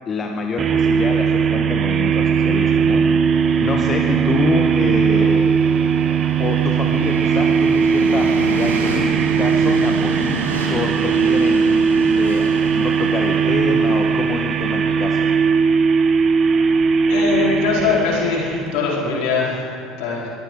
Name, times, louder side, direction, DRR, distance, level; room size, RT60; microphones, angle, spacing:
voice 1, 0.1-3.1 3.6-5.5 6.4-11.7 12.2-12.5 12.7-15.3, left 4 dB, 35° left, 2 dB, 1.3 m, -26 dB
sound 1, 0.6-18.9, right 6 dB, 40° right, 0.8 m, -18 dB
Train, 2.7-18.8, right 1 dB, 90° right, 2.0 m, -32 dB
voice 2, 17.1-20.3, left 4 dB, 65° left, -4 dB, 3.9 m, -22 dB
23.0 x 14.0 x 3.8 m, 2.6 s
hypercardioid pair, 65°, 0 cm